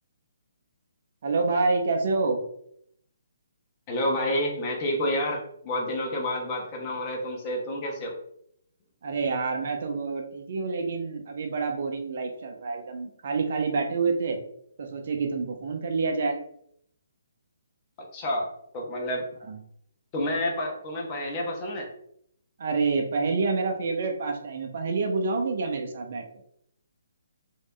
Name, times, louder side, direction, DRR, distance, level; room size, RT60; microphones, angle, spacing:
voice 1, 1.2-2.4 9.0-14.4 14.8-16.4 19.5-19.6 22.6-26.2, right 4 dB, 55° right, 3 dB, 0.9 m, -27 dB
voice 2, 3.9-8.1 18.1-19.2 20.1-21.9, left 1 dB, 30° left, 0 dB, 1.2 m, -29 dB
3.5 x 3.3 x 4.1 m, 0.70 s
figure-of-eight pair, 140°, 0 cm